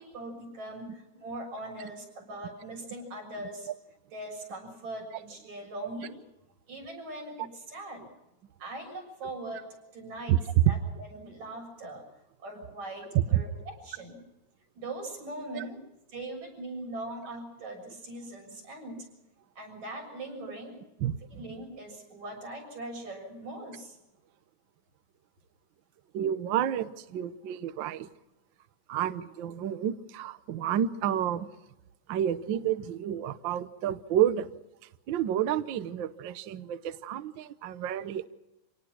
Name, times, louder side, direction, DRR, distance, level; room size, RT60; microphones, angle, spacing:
voice 1, 0.0-3.7 4.1-6.2 6.7-8.1 8.6-9.7 9.9-10.4 10.6-12.0 12.4-14.2 14.8-15.8 16.1-19.1 19.6-20.7 21.4-24.0, right 1 dB, 65° right, 1 dB, 8.2 m, -41 dB
voice 2, 10.3-10.7 13.1-13.4 15.5-15.7 21.0-21.4 26.1-28.1 28.9-31.5 32.1-34.5 35.1-38.3, right 11 dB, 90° right, 12 dB, 1.0 m, -29 dB
27.0 x 18.5 x 6.2 m, 0.97 s
omnidirectional pair, 3.5 m